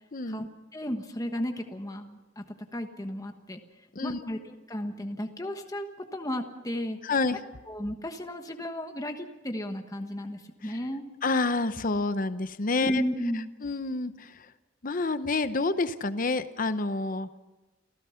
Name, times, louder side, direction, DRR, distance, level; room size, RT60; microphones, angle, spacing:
voice 1, 0.1-0.5 3.9-4.3 7.0-7.4 10.6-10.8 11.2-13.0 13.6-14.5 14.8-17.3, left 3 dB, 50° left, 12 dB, 0.9 m, -28 dB
voice 2, 0.7-3.6 4.0-7.0 7.7-11.1 12.8-13.5, equal, 20° left, 5 dB, 1.3 m, -34 dB
28.5 x 16.0 x 5.8 m, 1.2 s
head